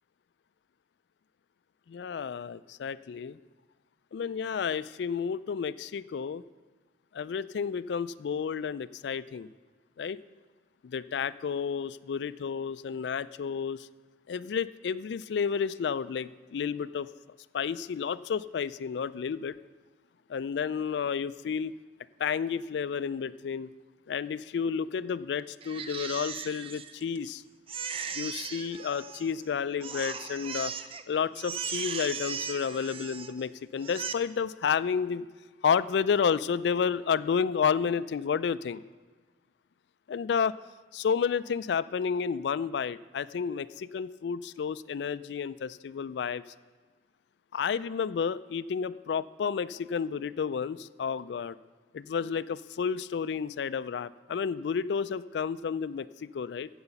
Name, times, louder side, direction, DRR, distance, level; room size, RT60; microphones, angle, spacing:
voice 1, 1.9-3.4 4.1-6.4 7.1-9.5 10.0-10.2 10.8-13.9 14.3-17.1 17.5-19.5 20.3-21.7 22.2-23.7 24.1-27.4 28.1-30.7 31.1-35.3 35.6-38.8 40.1-40.5 40.9-46.4 47.5-51.6 51.9-56.7, left 6 dB, 70° left, 16 dB, 0.3 m, -31 dB
Crying sobbing, 25.6-27.3 27.7-29.5 29.8-31.0 31.3-33.4 33.8-34.1, right 6 dB, 35° right, 0.5 m, -37 dB
9.6 x 7.8 x 7.1 m, 1.4 s
head